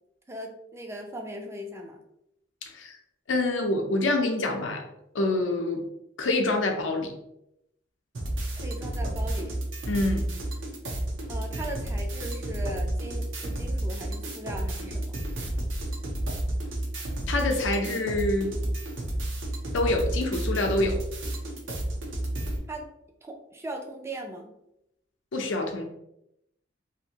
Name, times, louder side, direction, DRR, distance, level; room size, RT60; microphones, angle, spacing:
voice 1, 0.3-2.0 8.6-9.6 11.3-15.1 22.7-22.9 23.2-24.5, right 1 dB, 15° right, 2 dB, 0.4 m, -38 dB
voice 2, 2.6-3.0 3.3-4.8 5.1-5.8 6.2-7.1 9.9-10.3 17.3-18.5 19.7-21.0 25.3-25.8, left 2 dB, 75° left, 3 dB, 0.5 m, -26 dB
sound 1, 8.1-22.6, right 1 dB, 75° right, 0.7 m, -31 dB
2.7 x 2.5 x 2.8 m, 0.82 s
head